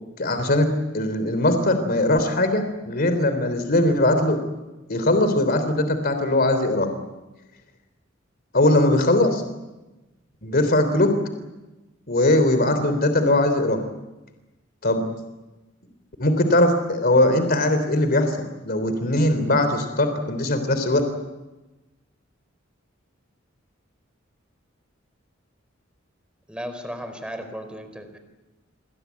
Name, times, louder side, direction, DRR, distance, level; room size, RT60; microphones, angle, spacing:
voice 1, 0.2-0.7 0.9-4.4 4.9-6.9 8.5-9.4 10.4-11.1 12.1-13.8 14.8-15.0 16.2-21.0, left 1 dB, 50° left, 8 dB, 3.4 m, -20 dB
voice 2, 26.5-28.2, equal, 5° right, 7 dB, 4.4 m, -35 dB
29.0 x 22.5 x 8.4 m, 1.1 s
head